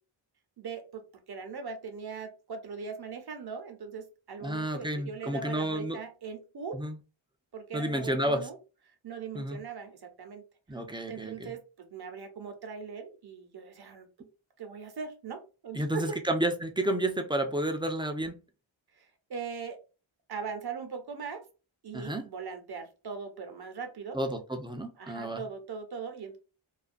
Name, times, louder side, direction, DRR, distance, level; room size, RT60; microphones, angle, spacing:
voice 1, 0.6-6.8 7.5-8.6 9.0-10.4 10.7-10.8 11.1-14.3 14.6-16.2 18.9-19.8 20.3-21.4 21.8-24.2 25.0-26.4, right 5 dB, 55° right, 6 dB, 0.7 m, -40 dB
voice 2, 4.4-6.0 6.7-7.0 7.7-8.5 9.3-9.6 10.7-11.5 15.7-18.4 21.9-22.2 24.1-25.4, right 1 dB, 10° right, 6 dB, 0.3 m, -31 dB
2.4 x 2.2 x 2.5 m, 0.32 s
wide cardioid pair, 70°, 47 cm